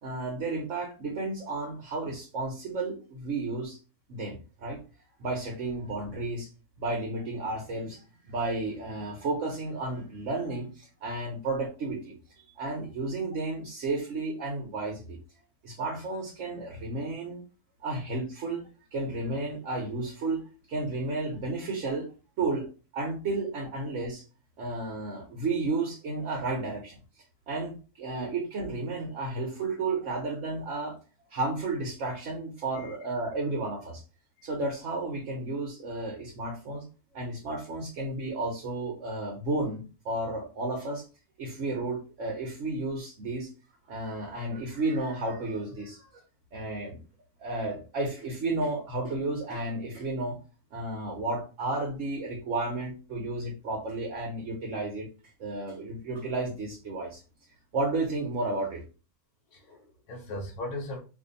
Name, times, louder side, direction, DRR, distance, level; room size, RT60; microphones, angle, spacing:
voice 1, 0.0-3.8 4.1-4.8 5.2-6.5 6.8-15.2 15.6-17.4 17.8-22.1 22.4-22.7 22.9-24.2 24.6-27.0 27.5-31.0 31.3-34.0 34.4-36.9 37.1-41.0 41.4-43.5 43.9-46.1 46.5-47.0 47.4-50.4 50.7-55.1 55.4-57.2 57.7-58.8, right 2 dB, 60° right, 0 dB, 1.1 m, -32 dB
voice 2, 59.5-61.0, left 1 dB, 85° left, 1 dB, 1.3 m, -38 dB
2.9 x 2.7 x 3.8 m, 0.34 s
omnidirectional pair, 1.6 m